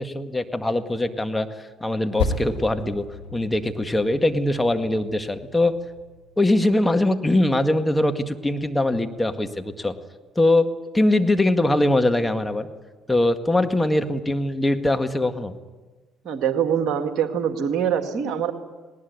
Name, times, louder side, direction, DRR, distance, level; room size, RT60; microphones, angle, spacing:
voice 1, 0.0-1.5 1.8-3.1 3.3-5.8 6.4-9.9 10.4-10.7 10.9-12.7 13.1-15.6, left 1 dB, 15° left, 7 dB, 1.9 m, -22 dB
Percussion, 2.2-7.0, left 4 dB, 85° left, 2.2 m, -34 dB
voice 2, 16.2-18.5, right 8 dB, 60° right, 6 dB, 2.1 m, -24 dB
19.5 x 18.5 x 9.5 m, 1.3 s
hypercardioid pair, 50°, 0 cm